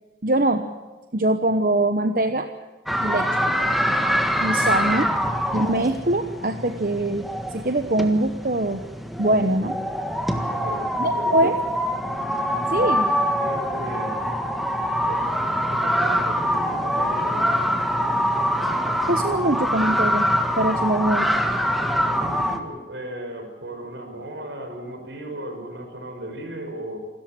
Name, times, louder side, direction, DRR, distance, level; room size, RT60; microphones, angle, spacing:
voice 1, 0.2-0.7 1.1-2.5 3.0-3.4 4.4-5.1 5.5-7.3 7.5-8.8 9.2-9.8 11.0-11.6 12.7-13.1 19.1-20.3 20.6-21.3, right 1 dB, 50° right, 7 dB, 1.0 m, -22 dB
sound 1, 2.9-22.6, equal, ahead, 1.5 m, -24 dB
voice 2, 10.5-11.5 12.7-13.1 13.4-14.2 15.0-15.3 15.7-17.5 22.0-27.0, right 1 dB, 75° right, 5 dB, 5.8 m, -36 dB
27.0 x 14.0 x 9.0 m, 1.3 s
head